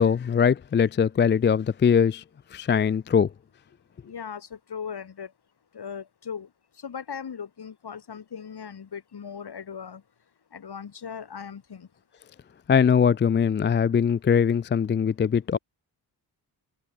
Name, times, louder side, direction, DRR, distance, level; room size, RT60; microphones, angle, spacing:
voice 1, 0.0-2.2 2.5-3.3 12.7-15.6, left 7 dB, 25° left, 0.4 m, -21 dB
voice 2, 4.1-4.4 4.7-5.3 5.8-6.5 6.8-10.0 10.5-11.9, left 7 dB, 65° left, 5.2 m, -38 dB
cardioid pair, 55°, 43 cm